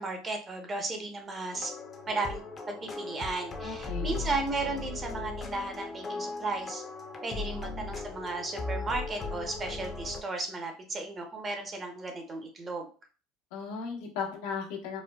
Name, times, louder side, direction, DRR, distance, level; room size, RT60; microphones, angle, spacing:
voice 1, 0.0-1.7 2.1-6.8 7.2-12.9, right 3 dB, 25° right, 4 dB, 0.7 m, -35 dB
sound 1, 1.5-10.2, left 3 dB, 25° left, 0.6 m, -38 dB
voice 2, 3.6-4.2 7.3-7.9 13.5-15.0, left 5 dB, 85° left, 0 dB, 1.0 m, -37 dB
4.2 x 2.1 x 2.2 m, 0.36 s
supercardioid pair, 125°, 0 cm